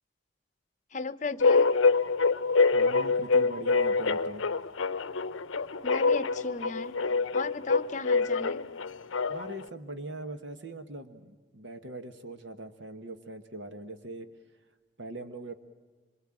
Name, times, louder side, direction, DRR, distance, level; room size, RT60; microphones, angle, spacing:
voice 1, 0.9-1.7 5.8-7.0 7.3-8.7, left 4 dB, 35° left, 12 dB, 0.8 m, -36 dB
sound 1, 1.4-9.6, left 4 dB, 80° left, 0.7 m, -25 dB
voice 2, 2.7-4.4 9.3-14.3 15.0-15.5, right 2 dB, 65° right, 8 dB, 1.3 m, -41 dB
26.0 x 23.5 x 8.8 m, 1.4 s
head